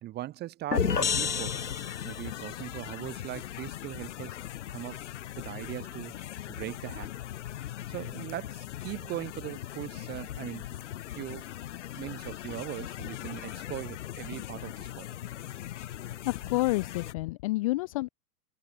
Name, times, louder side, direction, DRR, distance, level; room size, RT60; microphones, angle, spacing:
voice 1, 0.0-1.7 2.0-4.4 4.7-5.0 5.4-6.2 6.5-7.1 7.9-10.8 11.2-11.5 11.9-15.2, right 14 dB, 20° right, 2.4 m, -40 dB
sound 1, 0.7-2.4, left 6 dB, 80° left, 1.6 m, -29 dB
sound 2, 0.7-17.1, left 12 dB, 45° left, 2.5 m, -40 dB
voice 2, 15.9-18.1, left 20 dB, 20° left, 0.7 m, -30 dB
figure-of-eight pair, 115°, 48 cm